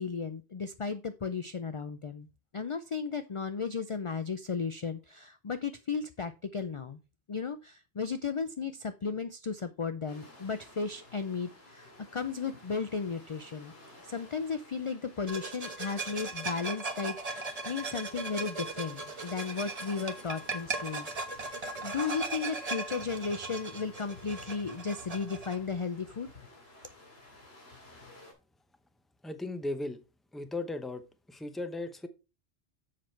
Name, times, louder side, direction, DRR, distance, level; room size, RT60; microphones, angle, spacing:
voice 1, 0.0-2.3 2.5-7.0 7.3-13.7 14.0-26.3, left 5 dB, 45° left, 11 dB, 0.4 m, -35 dB
sound 1, 10.1-28.3, left 2 dB, 70° left, 2.6 m, -54 dB
sound 2, 15.3-25.6, right 3 dB, 35° right, 1.1 m, -38 dB
voice 2, 29.2-30.0 30.3-31.0 31.3-32.1, left 2 dB, ahead, 9 dB, 0.6 m, -36 dB
7.5 x 6.0 x 4.5 m, 0.30 s
omnidirectional pair, 1.1 m